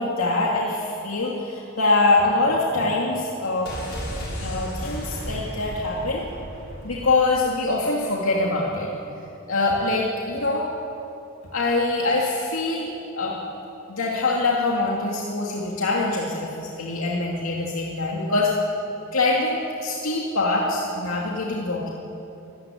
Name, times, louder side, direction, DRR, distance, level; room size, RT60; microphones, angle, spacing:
voice 1, 0.0-3.7 4.4-6.2 6.8-8.9 9.5-10.7 11.5-13.4 13.9-18.5 19.1-21.9, left 2 dB, 90° left, -3 dB, 2.5 m, -24 dB
sound 1, 3.6-7.4 7.7-7.8, equal, 55° left, 7.2 m, -34 dB
25.0 x 14.0 x 9.4 m, 2.8 s
head